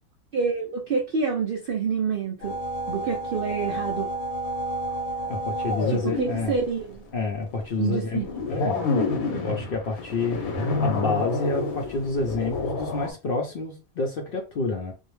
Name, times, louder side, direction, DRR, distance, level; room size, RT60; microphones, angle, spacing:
voice 1, 0.3-2.6 2.9-4.1 5.9-7.0 7.8-8.2 8.5-8.7, right 5 dB, 75° right, 0.5 m, -27 dB
sound 1, 2.4-13.1, left 2 dB, 85° left, 1.2 m, -29 dB
voice 2, 5.3-6.6 7.1-8.8 9.3-10.4 10.8-14.9, left 3 dB, 60° left, 0.6 m, -28 dB
2.6 x 2.0 x 3.0 m
omnidirectional pair, 1.5 m